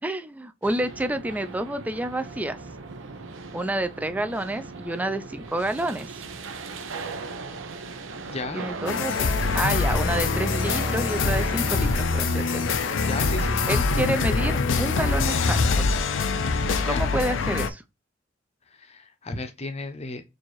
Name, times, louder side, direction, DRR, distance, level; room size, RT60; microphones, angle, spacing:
voice 1, 0.0-2.6 3.5-6.1 8.5-9.3 9.5-12.7 13.7-15.9 16.9-17.8, right 1 dB, 10° right, 0.3 m, -29 dB
sound 1, 0.6-14.2, right 3 dB, 80° right, 0.6 m, -38 dB
voice 2, 8.3-8.7 13.0-13.7 16.8-17.0 18.8-20.2, left 3 dB, 35° left, 0.6 m, -34 dB
sound 2, 8.9-17.7, left 4 dB, 75° left, 0.4 m, -24 dB
4.5 x 2.5 x 3.0 m
head